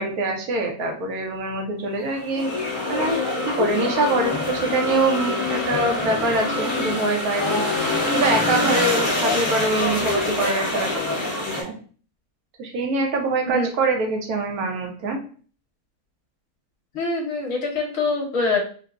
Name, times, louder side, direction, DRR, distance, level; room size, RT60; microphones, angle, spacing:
voice 1, 0.0-7.6 8.1-11.0 11.4-11.7 12.6-15.2, right 2 dB, 75° right, 2 dB, 1.2 m, -24 dB
soeks medina marrakesh, 2.1-11.6, left 2 dB, 40° left, 1.0 m, -25 dB
voice 2, 16.9-18.6, left 3 dB, 65° left, 1 dB, 1.0 m, -24 dB
3.5 x 2.0 x 2.3 m, 0.42 s
omnidirectional pair, 1.6 m